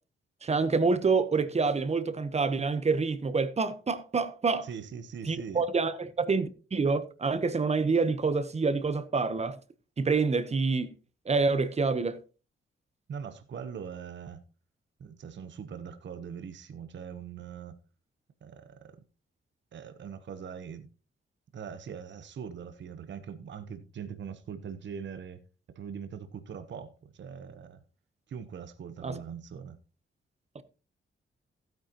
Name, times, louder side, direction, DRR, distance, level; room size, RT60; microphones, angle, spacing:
voice 1, 0.4-4.7 5.2-9.6 10.0-10.9 11.3-12.2 29.0-29.2 30.5-30.6, right 4 dB, 30° right, 0.9 m, -27 dB
voice 2, 4.6-5.6 13.1-14.4 15.0-17.8 18.4-19.0 19.7-20.9 21.5-25.4 25.7-27.8 28.3-29.8, right 7 dB, 60° right, 1.0 m, -42 dB
15.5 x 9.1 x 2.9 m
wide cardioid pair, 135°, 21 cm